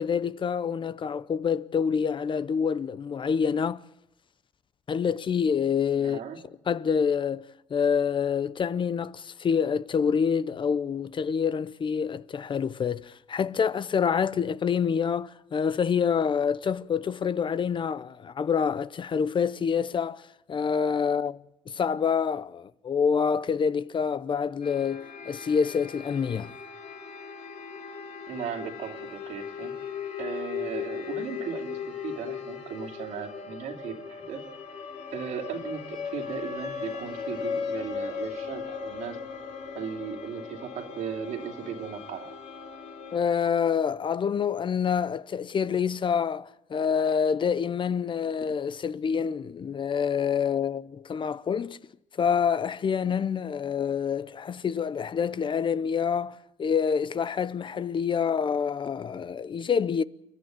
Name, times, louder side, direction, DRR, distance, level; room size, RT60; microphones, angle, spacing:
voice 1, 0.0-3.8 4.9-6.2 6.7-21.4 21.7-26.5 43.1-51.8 52.2-60.0, left 7 dB, 40° left, 0.7 m, -27 dB
voice 2, 6.0-6.4 28.3-29.7 30.2-34.4 34.7-34.8 35.1-39.2 39.7-42.3, right 7 dB, 75° right, 2.8 m, -37 dB
sound 1, 24.6-43.2, left 6 dB, 65° left, 3.0 m, -38 dB
29.0 x 11.5 x 9.1 m
cardioid pair, 95°, 13 cm